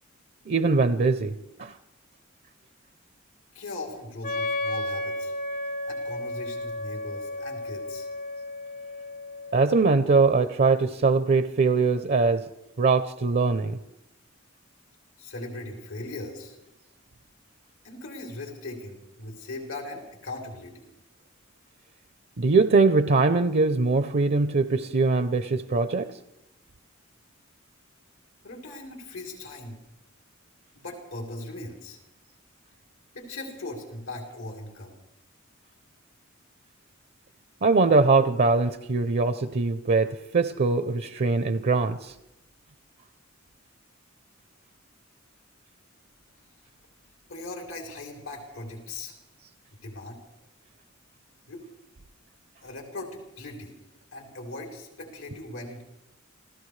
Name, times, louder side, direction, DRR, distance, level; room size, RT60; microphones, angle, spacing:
voice 1, 0.5-1.7 9.5-12.5 12.8-13.8 22.4-26.1 37.6-42.1, right 3 dB, 50° right, 0.6 m, -22 dB
voice 2, 3.5-5.3 5.8-8.1 15.2-16.6 17.8-20.9 28.4-29.8 30.7-32.0 33.1-34.9 47.3-49.1 49.8-50.2 51.5-51.6 52.6-53.8 54.1-55.8, left 2 dB, 90° left, 3.4 m, -39 dB
Wind instrument woodwind instrument, 4.2-9.9, left 1 dB, 45° left, 0.5 m, -33 dB
28.0 x 16.0 x 3.2 m
head